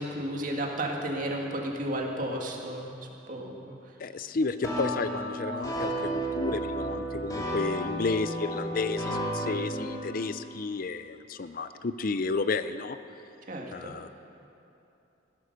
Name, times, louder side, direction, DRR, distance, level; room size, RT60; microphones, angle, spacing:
voice 1, 0.0-3.0 3.3-3.8 13.5-13.9, right 1 dB, 45° right, 0 dB, 2.0 m, -33 dB
voice 2, 4.0-13.0 13.7-14.1, left 3 dB, 45° left, 12 dB, 0.5 m, -32 dB
sound 1, 4.6-10.0, right 1 dB, 20° left, 2.3 m, -32 dB
16.5 x 13.0 x 6.7 m, 2.9 s
head